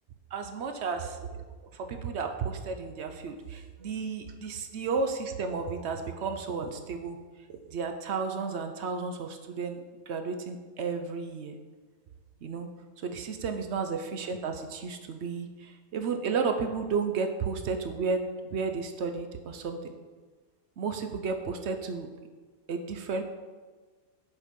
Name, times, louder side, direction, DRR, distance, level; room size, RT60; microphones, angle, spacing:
voice 1, 0.3-1.4 1.7-7.2 7.5-11.6 12.4-12.7 13.0-19.9 20.8-22.1 22.7-23.2, right 5 dB, 60° right, 6 dB, 0.8 m, -33 dB
7.1 x 4.8 x 5.1 m, 1.4 s
omnidirectional pair, 1.6 m